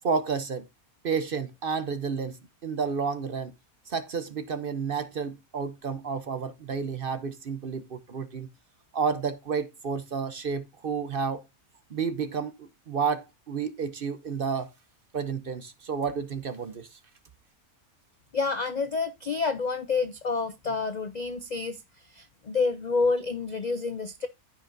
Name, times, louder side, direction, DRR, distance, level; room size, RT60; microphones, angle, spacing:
voice 1, 0.0-0.7 1.0-3.5 3.9-8.5 8.9-11.4 11.9-14.7 15.1-17.0, right 5 dB, 50° right, 0.8 m, -31 dB
voice 2, 18.3-24.3, left 4 dB, 80° left, 0.3 m, -29 dB
14.0 x 5.7 x 2.6 m
omnidirectional pair, 1.6 m